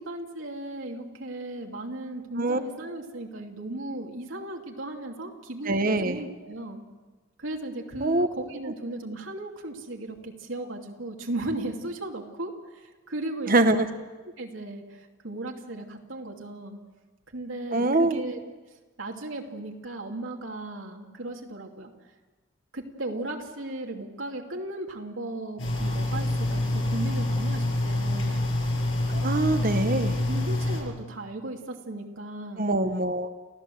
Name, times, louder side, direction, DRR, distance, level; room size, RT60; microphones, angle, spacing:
voice 1, 0.0-6.8 7.4-13.9 14.4-16.8 17.3-18.4 19.0-21.9 22.7-28.4 30.0-32.7, right 2 dB, 80° right, 1 dB, 2.7 m, -36 dB
voice 2, 5.7-6.2 8.0-8.3 13.5-13.9 17.7-18.2 29.1-30.2 32.6-33.3, right 2 dB, 45° right, 9 dB, 1.2 m, -24 dB
sound 1, 25.6-30.8, left 1 dB, 80° left, 7.1 m, -26 dB
30.0 x 15.0 x 7.8 m, 1.3 s
head